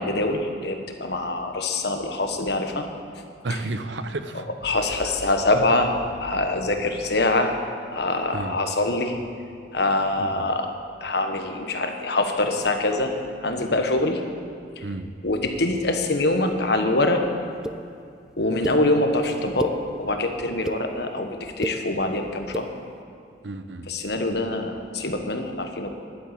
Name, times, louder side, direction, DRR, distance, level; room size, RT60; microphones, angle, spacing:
voice 1, 0.0-2.9 3.5-3.6 4.3-7.6 7.9-9.2 9.7-10.7 11.0-13.1 13.4-14.2 15.2-17.2 18.4-22.7 23.9-25.9, left 2 dB, 60° left, 5 dB, 1.3 m, -24 dB
voice 2, 3.4-4.4 8.3-8.6 10.2-10.5 14.8-15.1 23.4-23.9, right 2 dB, 75° right, 10 dB, 0.8 m, -31 dB
sound 1, 17.6-17.8 18.6-18.8 19.4-19.8 20.4-20.8 21.4-21.8 22.4-22.7, right 1 dB, 5° right, 0.4 m, -29 dB
11.0 x 9.3 x 8.6 m, 2.4 s
head